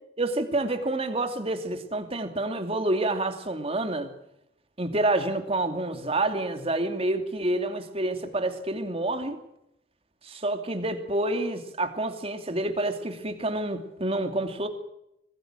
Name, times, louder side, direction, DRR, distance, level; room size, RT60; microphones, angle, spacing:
voice 1, 0.2-4.1 4.8-9.4 10.2-14.7, right 2 dB, 35° right, 7 dB, 2.8 m, -28 dB
25.5 x 19.0 x 6.4 m, 0.82 s
head